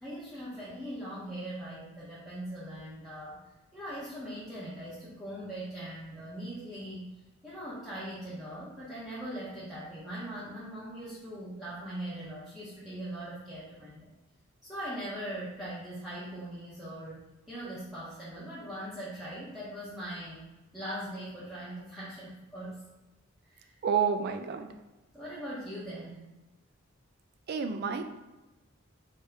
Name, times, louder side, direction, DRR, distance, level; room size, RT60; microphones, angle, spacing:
voice 1, 0.0-3.4 3.7-7.1 7.4-14.1 14.6-20.5 20.7-22.8 23.4-23.7 25.1-26.2, right 1 dB, ahead, -11 dB, 0.7 m, -40 dB
voice 2, 23.8-24.7 27.5-28.0, right 6 dB, 50° right, 8 dB, 0.3 m, -29 dB
3.4 x 2.7 x 3.4 m, 1.1 s
head